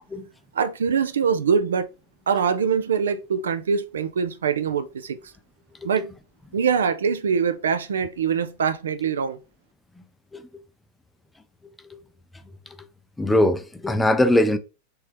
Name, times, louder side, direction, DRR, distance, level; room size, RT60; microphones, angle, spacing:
voice 1, 0.5-1.9 2.3-5.2 5.8-6.1 6.5-9.4, right 6 dB, 65° right, 0.3 m, -23 dB
voice 2, 13.2-14.6, left 1 dB, 5° left, 0.4 m, -21 dB
3.3 x 3.0 x 3.4 m
figure-of-eight pair, 90°, 0 cm